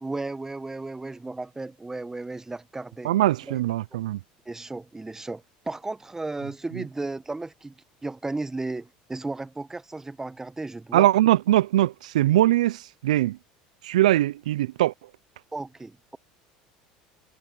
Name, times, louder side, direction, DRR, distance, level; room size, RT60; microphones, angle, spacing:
voice 1, 0.0-3.1 3.4-3.6 4.4-7.7 8.0-11.1 15.5-16.2, right 2 dB, 10° right, 1.2 m, -34 dB
voice 2, 3.0-4.2 10.9-13.4 13.8-14.9, right 14 dB, 80° right, 0.5 m, -21 dB
hypercardioid pair, 80°, 4 cm